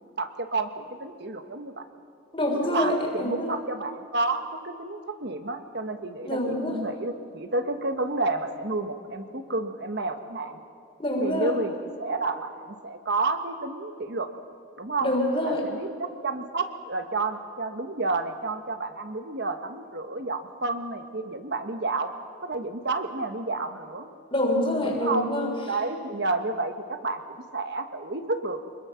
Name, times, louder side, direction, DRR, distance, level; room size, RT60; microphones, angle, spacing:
voice 1, 0.2-1.9 2.7-10.6 11.2-11.7 12.0-14.3 14.8-15.1 15.4-22.1 22.4-24.1 24.8-25.3 25.7-27.2 27.5-28.6, right 3 dB, 55° right, 8 dB, 1.4 m, -30 dB
voice 2, 2.3-3.6 6.2-6.8 11.0-11.5 15.0-15.7 24.3-25.5, left 1 dB, 25° left, 0 dB, 3.3 m, -26 dB
25.0 x 21.5 x 5.9 m, 2.5 s
head